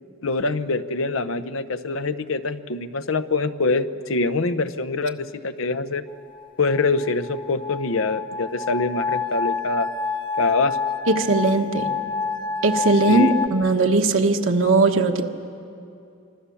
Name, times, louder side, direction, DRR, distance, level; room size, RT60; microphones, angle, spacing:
voice 1, 0.2-6.0 6.6-9.9 10.4-10.8 13.1-13.3, left 3 dB, 70° left, 11 dB, 0.8 m, -24 dB
sound 1, 6.3-13.5, left 5 dB, 25° left, 0.9 m, -28 dB
voice 2, 11.1-11.9 12.6-15.2, right 3 dB, 65° right, 3 dB, 1.4 m, -19 dB
25.5 x 25.0 x 7.1 m, 2.6 s
head